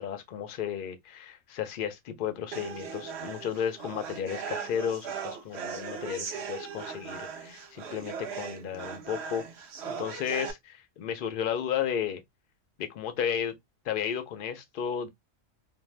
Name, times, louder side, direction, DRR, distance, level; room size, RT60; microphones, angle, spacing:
voice 1, 0.0-9.4 9.8-12.2 12.8-13.5 13.9-15.1, left 8 dB, 60° left, 0.5 m, -33 dB
sound 1, 2.5-10.5, right 6 dB, 60° right, 0.8 m, -38 dB
2.6 x 2.1 x 3.1 m
omnidirectional pair, 1.4 m